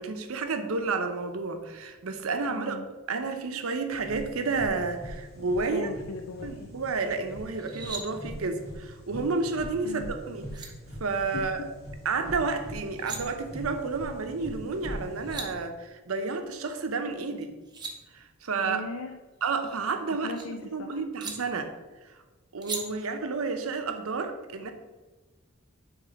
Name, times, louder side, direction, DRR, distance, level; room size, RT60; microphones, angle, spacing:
voice 1, 0.0-2.8 3.1-5.9 6.4-10.7 11.0-11.6 12.0-17.5 18.1-18.8 19.4-20.3 20.7-21.7 22.5-24.7, right 4 dB, 90° right, 7 dB, 0.7 m, -31 dB
voice 2, 2.5-2.9 5.6-6.7 9.8-10.1 11.3-11.6 18.6-19.1 20.2-21.0, left 3 dB, 80° left, 6 dB, 0.4 m, -38 dB
sound 1, 3.9-15.5, equal, 50° left, 1.9 m, -42 dB
sound 2, 7.5-8.0 10.1-10.2 10.5-10.7 12.8-13.2 14.9-15.0 15.1-15.5 17.4-17.9 19.4-20.4 21.2-21.3 22.6-22.8, right 4 dB, 20° right, 0.8 m, -38 dB
6.5 x 3.2 x 5.1 m, 1.2 s
head